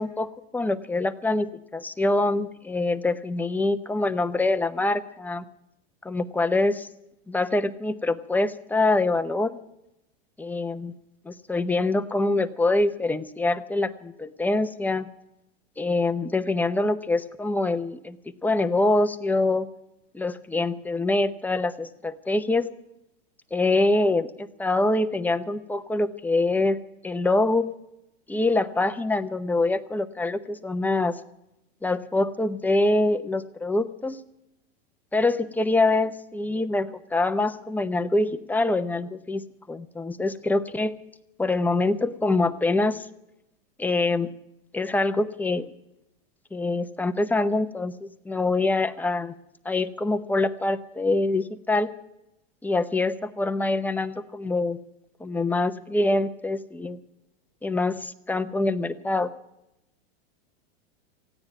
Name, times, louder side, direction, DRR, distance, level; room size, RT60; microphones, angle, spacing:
voice 1, 0.0-5.4 6.0-6.9 7.3-9.6 10.4-10.9 11.3-15.1 15.8-18.2 18.4-19.7 20.1-22.7 23.5-26.8 27.0-27.7 28.3-31.2 31.8-34.2 35.1-39.4 39.7-40.9 41.4-43.1 43.8-44.3 44.7-45.7 46.5-49.3 49.6-51.9 52.6-54.8 55.2-57.0 57.6-59.3, left 2 dB, 5° left, 9 dB, 0.7 m, -25 dB
15.0 x 9.6 x 9.1 m, 0.86 s
hypercardioid pair, 120°, 32 cm